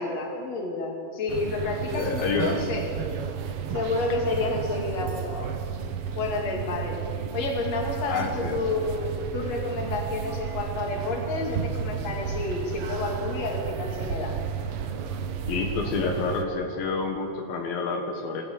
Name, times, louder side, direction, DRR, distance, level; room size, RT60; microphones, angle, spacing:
voice 1, 0.0-3.0 3.7-5.5 6.2-7.0 7.3-14.4 15.9-16.1, left 3 dB, 50° left, 1 dB, 3.6 m, -30 dB
sound 1, 1.3-16.4, right 7 dB, 90° right, 1.2 m, -32 dB
voice 2, 1.9-2.6 8.1-8.6 15.5-18.4, left 4 dB, 80° left, 2 dB, 3.3 m, -28 dB
22.0 x 14.5 x 8.6 m, 2.5 s
omnidirectional pair, 4.1 m